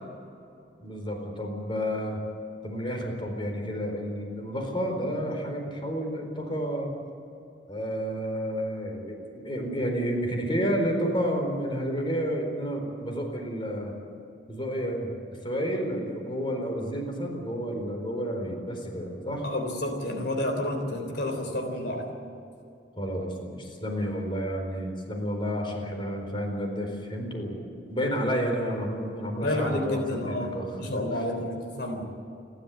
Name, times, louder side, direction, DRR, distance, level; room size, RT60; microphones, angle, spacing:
voice 1, 0.8-2.2 2.6-6.9 7.7-13.9 14.5-15.1 15.4-19.4 23.0-31.2, equal, 30° left, 2 dB, 4.3 m, -30 dB
voice 2, 19.4-22.1 29.4-32.0, left 1 dB, 65° left, 4 dB, 3.5 m, -30 dB
30.0 x 13.0 x 8.5 m, 2.7 s
head